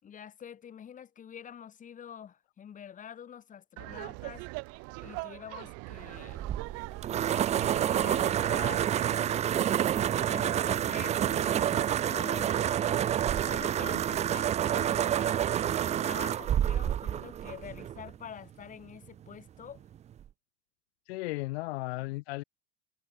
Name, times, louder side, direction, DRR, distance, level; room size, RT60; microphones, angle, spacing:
voice 1, 0.0-4.5 5.0-6.5 7.6-9.7 10.2-13.1 13.4-19.8, left 8 dB, 25° left, 5.0 m, -46 dB
Laughter, 3.8-8.9, right 28 dB, 50° right, 1.4 m, -41 dB
sound 1, 6.3-18.2, right 10 dB, 20° right, 0.6 m, -28 dB
voice 2, 21.1-22.4, left 22 dB, 75° left, 2.0 m, -35 dB
supercardioid pair, 145°, 31 cm